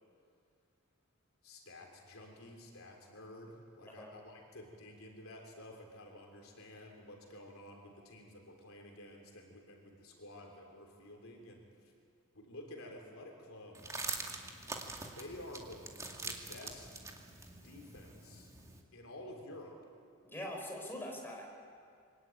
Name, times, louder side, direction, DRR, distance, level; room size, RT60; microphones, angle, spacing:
voice 1, 1.4-11.9 12.3-13.9 15.1-15.9 16.1-16.9 17.6-18.5 18.9-19.8, left 1 dB, 70° left, 1 dB, 3.7 m, -51 dB
sound 1, 13.7-18.8, right 3 dB, 15° right, 2.2 m, -44 dB
voice 2, 20.2-21.5, left 1 dB, 10° left, 0 dB, 5.0 m, -43 dB
24.5 x 19.0 x 9.2 m, 2.3 s
head